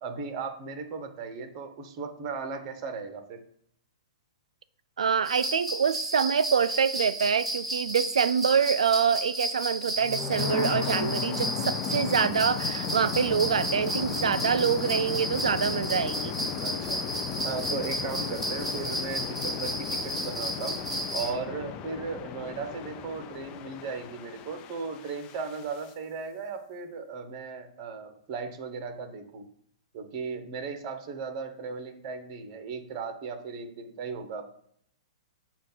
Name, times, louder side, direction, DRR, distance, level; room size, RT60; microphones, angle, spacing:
voice 1, 0.0-3.4 16.6-17.0 17.4-20.8 21.1-29.4 29.9-34.4, right 5 dB, 45° right, 1.0 m, -36 dB
voice 2, 5.0-16.3, right 7 dB, 85° right, 0.4 m, -26 dB
sound 1, 5.2-21.3, right 1 dB, 5° right, 2.8 m, -33 dB
sound 2, 10.0-25.9, left 8 dB, 35° left, 0.4 m, -35 dB
7.4 x 2.5 x 5.5 m
hypercardioid pair, 125°, 3 cm